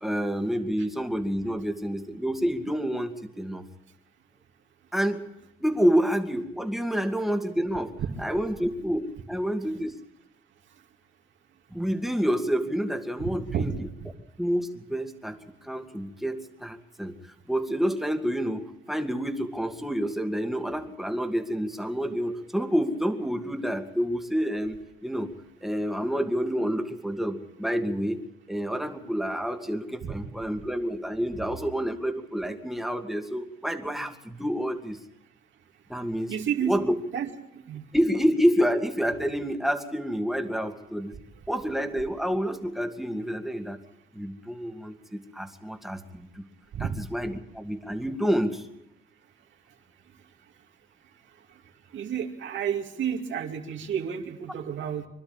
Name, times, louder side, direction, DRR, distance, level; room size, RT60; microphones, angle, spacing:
voice 1, 0.0-3.6 4.9-5.2 5.6-7.9 8.2-10.0 11.7-13.9 14.4-17.1 17.5-25.3 25.6-28.2 28.5-35.0 35.9-36.3 36.6-37.0 37.9-41.1 41.5-43.8 44.1-46.4 46.8-48.6, equal, ahead, 5 dB, 2.1 m, -28 dB
voice 2, 13.2-13.7 30.0-30.1 36.3-36.8 37.1-37.3 37.5-37.9 46.7-47.0 51.9-55.1, right 8 dB, 70° right, 2 dB, 2.5 m, -30 dB
25.0 x 12.5 x 8.9 m, 0.87 s
cardioid pair, 90°, 20 cm